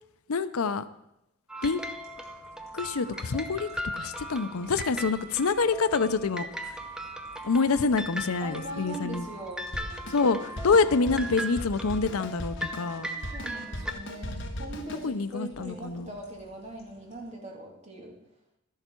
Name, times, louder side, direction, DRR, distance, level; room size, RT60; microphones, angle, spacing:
voice 1, 0.3-0.8 1.6-1.8 2.7-6.8 7.4-9.3 10.1-13.1 15.0-16.1, left 4 dB, 85° left, 13 dB, 0.6 m, -26 dB
sound 1, 1.5-13.9, right 1 dB, 5° right, 0.5 m, -38 dB
sound 2, 1.7-17.3, equal, 30° left, 4.0 m, -56 dB
voice 2, 8.0-10.0 13.3-18.1, right 1 dB, 30° right, -1 dB, 2.3 m, -41 dB
Drum kit, 9.7-15.1, equal, 55° left, 1.3 m, -38 dB
12.5 x 11.5 x 4.5 m, 0.83 s
head